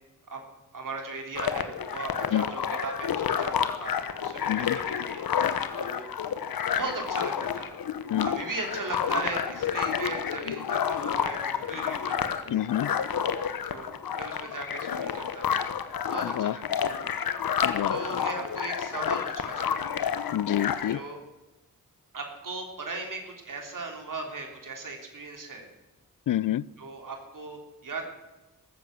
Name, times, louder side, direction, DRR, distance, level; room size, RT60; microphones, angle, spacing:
voice 1, 0.7-5.3 5.8-6.1 6.7-7.7 8.2-12.3 13.7-13.9 14.2-15.6 16.0-16.9 17.9-20.2 20.9-21.2 22.1-25.7 26.8-28.1, right 3 dB, 65° right, 3.5 m, -38 dB
sound 1, 1.4-21.0, left 8 dB, 85° left, 0.9 m, -30 dB
voice 2, 4.5-4.8 8.1-8.3 12.5-12.9 16.2-16.5 17.6-18.0 20.3-21.0 26.3-26.6, left 12 dB, 65° left, 0.5 m, -27 dB
18.0 x 7.8 x 7.6 m
cardioid pair, 50°, 34 cm